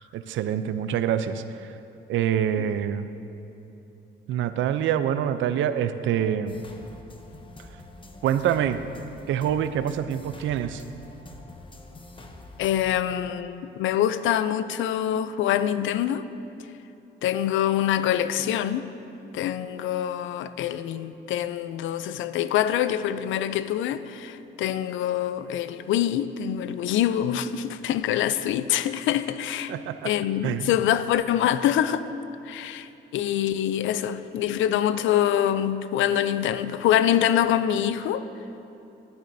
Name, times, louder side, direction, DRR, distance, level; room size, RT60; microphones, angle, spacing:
voice 1, 0.0-1.7 2.1-3.1 4.3-6.6 8.2-8.8 9.3-10.8 29.7-30.1 30.4-30.8, right 9 dB, 75° right, 0.5 m, -26 dB
sound 1, 6.5-13.0, left 2 dB, 25° left, 0.8 m, -46 dB
voice 2, 12.6-16.2 17.2-18.9 19.3-29.7 30.0-32.1 32.5-38.2, left 10 dB, 80° left, 0.4 m, -25 dB
14.0 x 9.4 x 2.7 m
cardioid pair, 90°, 20 cm